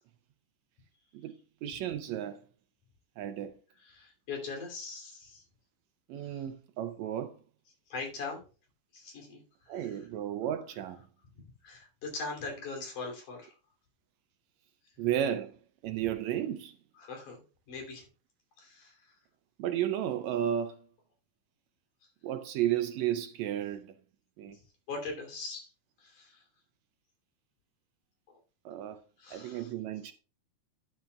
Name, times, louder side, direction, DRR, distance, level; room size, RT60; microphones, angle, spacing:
voice 1, 1.6-2.4 3.2-3.5 6.1-7.4 9.7-11.0 15.0-15.5 15.8-16.8 19.6-20.8 22.2-23.9 24.4-24.6 28.6-29.0 29.3-30.1, right 11 dB, 80° right, 1.7 m, -33 dB
voice 2, 3.8-5.5 6.2-6.4 7.9-8.4 8.9-10.0 11.6-13.5 17.0-18.0 18.6-19.2 22.0-22.1 24.4-24.5 24.9-25.7 26.0-26.4 28.3-28.4 29.2-29.7, left 3 dB, 85° left, 4.5 m, -41 dB
12.0 x 9.5 x 2.3 m
omnidirectional pair, 3.5 m